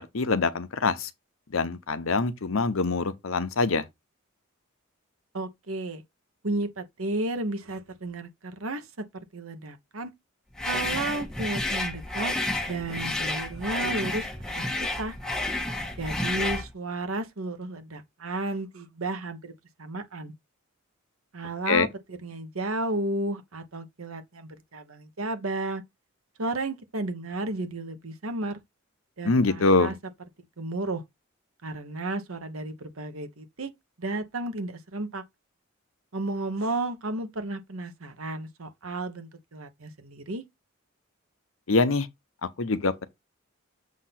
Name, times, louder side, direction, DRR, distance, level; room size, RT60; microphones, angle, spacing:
voice 1, 0.1-1.1 1.5-3.8 21.7-21.9 29.2-29.9 41.7-42.1 42.6-43.1, left 3 dB, 75° left, 0.8 m, -24 dB
voice 2, 5.3-6.0 6.4-9.0 9.3-10.1 10.6-12.3 12.7-14.3 14.5-14.7 15.0-15.1 16.0-19.5 19.8-20.3 21.3-21.9 22.2-25.8 26.4-28.6 29.2-29.9 30.6-31.0 31.6-33.7 34.0-35.2 36.1-40.4, right 2 dB, 85° right, 1.1 m, -33 dB
sound 1, 10.6-16.7, left 2 dB, 5° left, 1.0 m, -30 dB
7.4 x 2.8 x 5.8 m
head